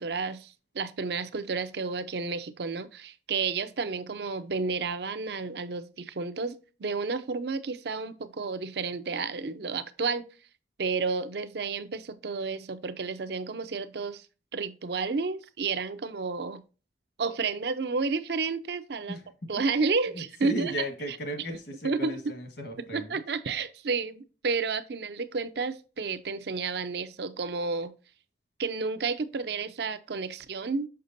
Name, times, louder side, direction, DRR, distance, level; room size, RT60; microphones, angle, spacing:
voice 1, 0.0-6.5 6.8-10.2 10.8-14.2 14.5-16.6 17.2-19.2 19.5-20.7 21.8-22.1 22.9-28.0 28.6-30.9, right 4 dB, 65° right, 0.6 m, -31 dB
voice 2, 20.1-23.2, equal, 65° left, 1.5 m, -35 dB
6.6 x 5.8 x 2.6 m
head